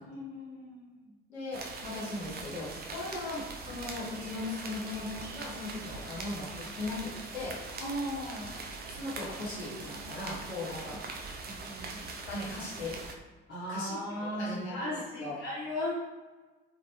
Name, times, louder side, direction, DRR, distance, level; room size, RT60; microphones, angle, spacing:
voice 1, 0.0-1.1 7.8-8.5 10.8-11.0 11.4-12.0 13.5-15.9, left 1 dB, 35° left, -11 dB, 1.3 m, -37 dB
voice 2, 1.3-7.6 8.9-11.3 12.3-13.0 13.7-14.9 15.2-15.4, left 2 dB, 85° left, -5 dB, 0.8 m, -38 dB
sound 1, 1.5-13.1, right 3 dB, 30° right, 0.5 m, -42 dB
3.3 x 2.5 x 2.9 m, 1.3 s
figure-of-eight pair, 50°, 32 cm